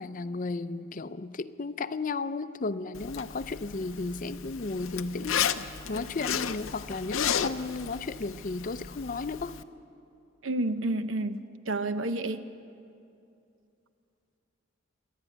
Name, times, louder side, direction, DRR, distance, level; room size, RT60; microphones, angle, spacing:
voice 1, 0.0-9.6, left 3 dB, 40° left, 13 dB, 0.5 m, -34 dB
Zipper (clothing), 2.9-9.6, left 8 dB, 85° left, 0.7 m, -34 dB
voice 2, 10.4-12.4, right 2 dB, 75° right, 10 dB, 0.9 m, -30 dB
26.0 x 11.0 x 9.2 m, 2.6 s
head